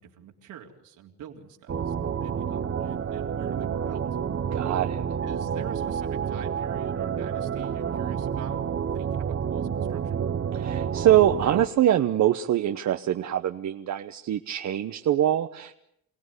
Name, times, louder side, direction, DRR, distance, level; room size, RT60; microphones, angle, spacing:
voice 1, 0.0-1.9 2.2-4.0 5.2-10.2, right 8 dB, 85° right, 2 dB, 3.6 m, -44 dB
sound 1, 1.7-11.7, right 7 dB, 45° right, 1.3 m, -29 dB
voice 2, 4.5-5.0 10.6-15.8, right 11 dB, 65° right, 8 dB, 1.1 m, -24 dB
28.0 x 17.5 x 9.7 m, 0.75 s
cardioid pair, 90°, 30 cm